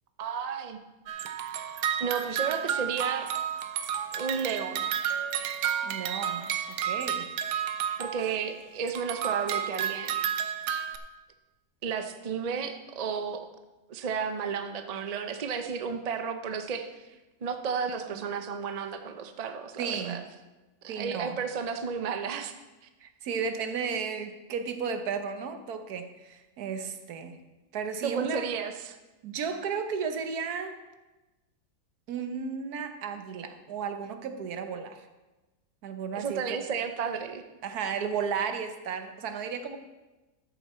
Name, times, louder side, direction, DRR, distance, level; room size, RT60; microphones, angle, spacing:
voice 1, 0.2-0.8 2.0-3.3 4.1-4.8 8.0-10.2 11.8-13.4 13.9-17.1 17.4-20.2 20.8-22.6 28.0-29.0 36.1-37.4, right 6 dB, 50° right, 7 dB, 0.5 m, -32 dB
sound 1, 1.1-8.5 8.9-11.0, right 9 dB, 85° right, 1.3 m, -31 dB
voice 2, 5.8-6.4 6.7-7.3 18.1-18.2 19.8-20.2 20.9-21.4 23.0-27.4 27.7-28.5 29.2-30.8 32.1-35.0 35.8-36.6 37.6-39.8, right 6 dB, 70° right, 8 dB, 1.4 m, -34 dB
13.0 x 7.1 x 4.2 m, 1.1 s
omnidirectional pair, 1.7 m